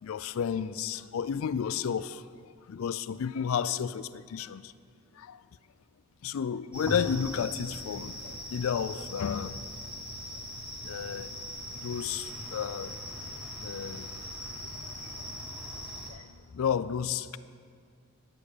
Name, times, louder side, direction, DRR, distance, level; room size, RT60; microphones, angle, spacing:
voice 1, 0.0-4.7 5.2-5.4 6.2-9.7 10.8-11.4 11.7-12.9 13.6-14.2 14.8-15.2 16.1-16.3 16.5-17.4, left 7 dB, 80° left, 0.4 m, -32 dB
sound 1, 6.7-16.1, equal, 5° right, 1.6 m, -40 dB
11.0 x 8.5 x 5.0 m
head